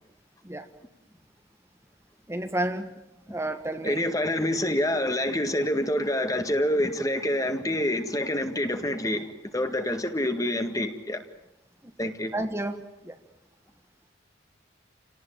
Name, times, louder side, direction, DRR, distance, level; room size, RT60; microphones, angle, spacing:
voice 1, 2.3-2.9 3.3-4.0 11.8-11.9 12.3-13.2, right 1 dB, 15° right, 6 dB, 1.4 m, -31 dB
voice 2, 3.8-11.2 12.0-12.3, left 1 dB, 20° left, 7 dB, 1.9 m, -27 dB
28.5 x 18.5 x 9.1 m, 0.96 s
head